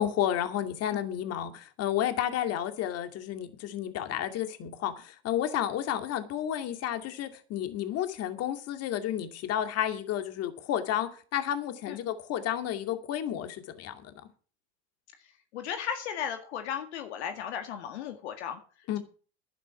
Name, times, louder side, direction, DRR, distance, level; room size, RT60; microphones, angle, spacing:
voice 1, 0.0-14.0 18.9-19.0, left 10 dB, 45° left, 2.4 m, -31 dB
voice 2, 15.5-18.6, left 8 dB, 70° left, 1.9 m, -35 dB
11.5 x 11.0 x 5.8 m
hypercardioid pair, 90°, 34 cm